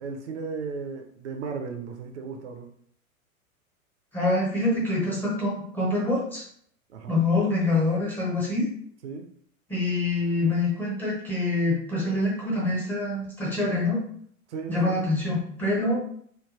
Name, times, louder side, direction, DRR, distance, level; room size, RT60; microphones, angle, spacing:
voice 1, 0.0-2.7 6.9-7.2 9.0-9.3 14.5-15.0, right 5 dB, 55° right, 4 dB, 0.5 m, -35 dB
voice 2, 4.1-6.4 7.1-8.6 9.7-14.0 14.7-16.0, left 2 dB, 5° left, -5 dB, 0.5 m, -25 dB
3.2 x 2.2 x 2.3 m, 0.63 s
figure-of-eight pair, 95°, 43 cm